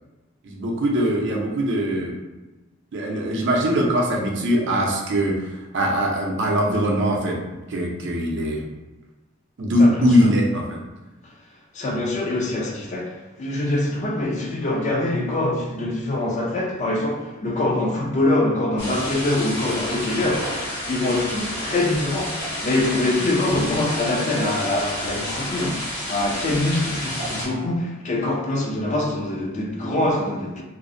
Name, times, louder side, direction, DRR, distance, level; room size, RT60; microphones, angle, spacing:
voice 1, 0.4-2.2 2.9-8.6 9.6-10.8, equal, 65° right, 0.5 m, -21 dB
voice 2, 9.8-10.3 11.7-20.5 20.9-30.6, left 2 dB, 35° left, 0.4 m, -24 dB
sound 1, 18.8-27.5, left 1 dB, 60° left, 1.1 m, -30 dB
2.5 x 2.0 x 2.5 m
head